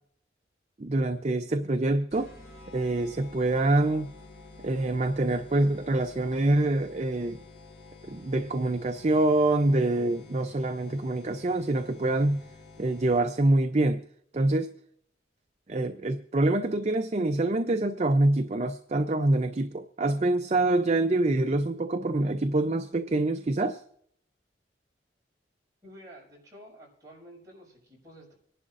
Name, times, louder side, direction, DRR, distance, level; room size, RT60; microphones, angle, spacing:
voice 1, 0.8-2.3 2.7-4.1 4.6-7.4 8.0-12.4 12.8-14.0 14.3-14.7 15.7-23.8, right 2 dB, 35° right, 8 dB, 0.5 m, -25 dB
sound 1, 2.1-13.5, left 3 dB, 60° left, 5.3 m, -50 dB
voice 2, 25.8-28.3, equal, 20° right, -4 dB, 5.9 m, -50 dB
25.0 x 11.0 x 2.5 m, 0.67 s
head